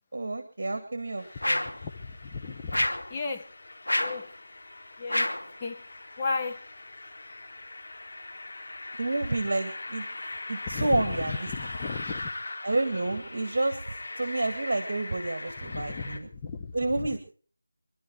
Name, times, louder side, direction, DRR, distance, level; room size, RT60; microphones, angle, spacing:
voice 1, 0.1-1.8 9.0-10.1 10.5-11.5 12.6-16.3 16.7-17.2, right 2 dB, 50° right, 2.1 m, -29 dB
sound 1, 1.2-16.2, left 2 dB, 50° left, 3.5 m, -41 dB
sound 2, 1.4-1.8 2.7-3.1 3.9-4.2 5.1-5.5, left 1 dB, 85° left, 2.7 m, -27 dB
voice 2, 1.8-3.5 4.0-4.3 5.0-5.3 5.6-5.8 6.2-6.6 10.7-12.3 15.7-17.1, left 4 dB, 20° left, 1.3 m, -35 dB
26.0 x 12.0 x 4.7 m
figure-of-eight pair, 165°, 0 cm